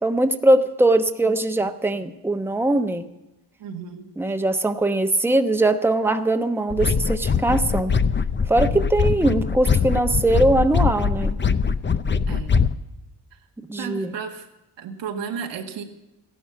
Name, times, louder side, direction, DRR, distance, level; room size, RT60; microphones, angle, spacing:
voice 1, 0.0-3.1 4.2-7.9 8.5-11.4 13.7-14.1, right 2 dB, 5° right, 7 dB, 1.1 m, -21 dB
voice 2, 3.6-4.1 12.3-12.5 13.3-13.4 13.8-14.5 14.8-15.8, right 6 dB, 90° right, 3 dB, 2.0 m, -33 dB
sound 1, 6.7-12.7, left 5 dB, 25° left, 0.7 m, -22 dB
15.0 x 11.5 x 7.0 m, 0.97 s
cardioid pair, 70°, 42 cm